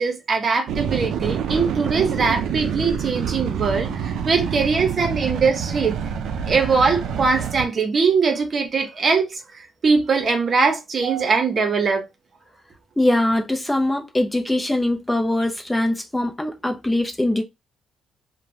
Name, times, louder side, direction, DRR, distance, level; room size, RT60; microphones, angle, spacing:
voice 1, 0.0-6.1 6.4-12.1, right 4 dB, 45° right, 0.8 m, -21 dB
sound 1, 0.7-7.7, right 7 dB, 80° right, 0.4 m, -27 dB
voice 2, 13.0-17.4, left 1 dB, 10° left, 0.6 m, -22 dB
3.0 x 2.2 x 2.7 m
cardioid pair, 90°, 0 cm